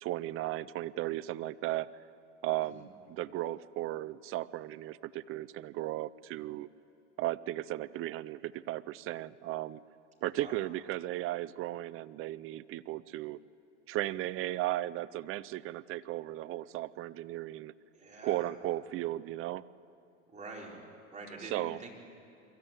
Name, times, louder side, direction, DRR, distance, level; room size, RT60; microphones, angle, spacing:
voice 1, 0.0-1.9 2.4-6.7 7.2-9.8 10.2-13.4 13.9-17.7 18.2-19.6 21.4-21.8, right 15 dB, 35° right, 18 dB, 0.5 m, -36 dB
voice 2, 17.9-18.5 20.3-20.8 21.1-21.9, right 3 dB, 20° right, -2 dB, 4.4 m, -46 dB
24.0 x 14.0 x 9.0 m, 2.8 s
supercardioid pair, 110°, 39 cm